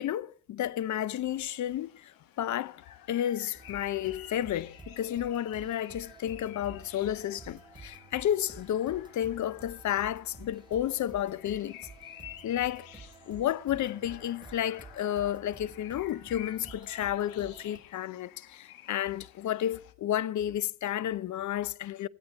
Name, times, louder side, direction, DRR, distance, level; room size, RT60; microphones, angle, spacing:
voice 1, 0.0-11.9 12.4-12.9 13.3-22.1, left 11 dB, 55° left, 0.7 m, -32 dB
sound 1, 1.3-19.9, left 12 dB, 75° left, 1.4 m, -52 dB
sound 2, 3.5-17.8, right 3 dB, 15° right, 3.4 m, -51 dB
16.5 x 16.0 x 4.0 m
supercardioid pair, 80°, 34 cm